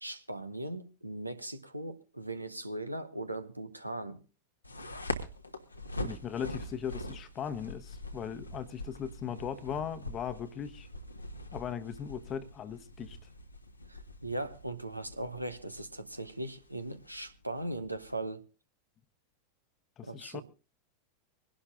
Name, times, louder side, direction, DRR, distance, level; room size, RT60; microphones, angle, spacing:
voice 1, 0.0-4.2 13.9-18.4 20.0-20.4, right 1 dB, 85° right, 1.0 m, -39 dB
sound 1, 4.6-18.1, left 1 dB, 85° left, 1.2 m, -43 dB
voice 2, 6.0-10.9 11.5-13.2 20.0-20.4, left 8 dB, 30° left, 1.0 m, -38 dB
25.5 x 11.5 x 2.4 m
figure-of-eight pair, 90°, 0 cm